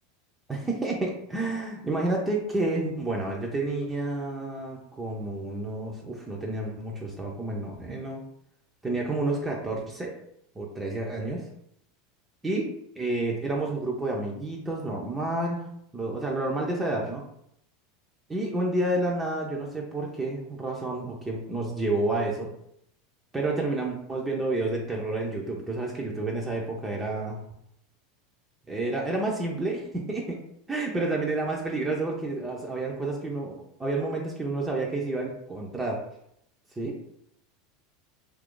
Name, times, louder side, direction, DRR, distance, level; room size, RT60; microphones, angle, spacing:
voice 1, 0.5-8.2 8.8-10.1 10.6-11.4 12.4-12.7 13.0-15.7 15.9-17.2 18.3-22.5 23.3-27.4 28.7-30.4 30.7-36.0 36.8-37.0, right 2 dB, 15° right, -2 dB, 0.6 m, -30 dB
2.7 x 2.5 x 3.7 m, 0.75 s
supercardioid pair, 110°, 0 cm